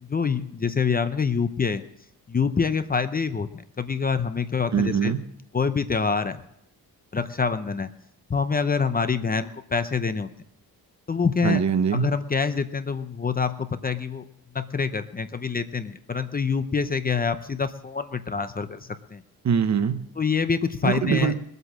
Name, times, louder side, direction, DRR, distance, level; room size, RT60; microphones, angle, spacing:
voice 1, 0.0-1.8 2.3-3.5 3.8-5.1 5.5-6.4 7.1-7.9 8.3-10.3 11.1-11.6 11.9-14.2 14.5-19.2 20.2-21.3, left 5 dB, 25° left, 10 dB, 0.6 m, -26 dB
voice 2, 4.7-5.2 11.4-12.1 19.4-20.0 20.8-21.3, right 7 dB, 45° right, 10 dB, 0.9 m, -22 dB
21.0 x 8.2 x 7.3 m, 0.78 s
wide cardioid pair, 160°, 37 cm